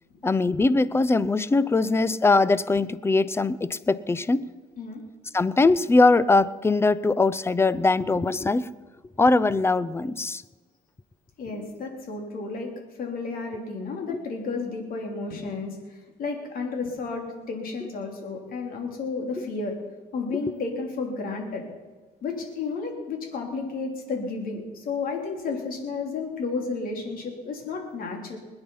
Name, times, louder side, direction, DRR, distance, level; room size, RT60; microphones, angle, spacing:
voice 1, 0.2-4.5 5.3-8.7 9.2-10.4 14.1-14.2, left 3 dB, 15° left, 18 dB, 0.6 m, -21 dB
voice 2, 11.4-12.7 13.0-19.8 20.1-21.6 22.2-28.4, left 4 dB, 60° left, 2 dB, 3.4 m, -32 dB
21.0 x 9.8 x 5.6 m, 1.3 s
cardioid pair, 110°, 17 cm